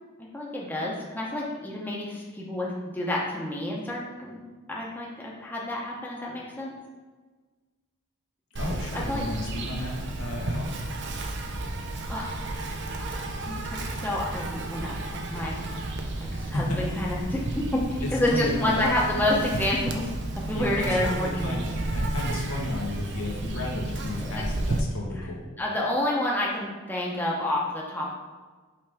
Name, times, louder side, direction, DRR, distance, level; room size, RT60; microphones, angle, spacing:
voice 1, 0.3-4.4 4.7-6.7 8.9-9.2 12.1-12.3 13.5-15.6 16.0-20.1 20.5-21.6 24.2-24.4 25.1-25.2 25.6-28.1, left 1 dB, 10° left, -4 dB, 0.8 m, -29 dB
voice 2, 8.5-10.7 16.3-17.2 18.0-18.9 20.5-25.4, left 1 dB, 85° left, -1 dB, 1.2 m, -33 dB
Insect, 8.6-24.8, right 2 dB, 55° right, 0.6 m, -32 dB
5.6 x 5.0 x 3.5 m, 1.3 s
head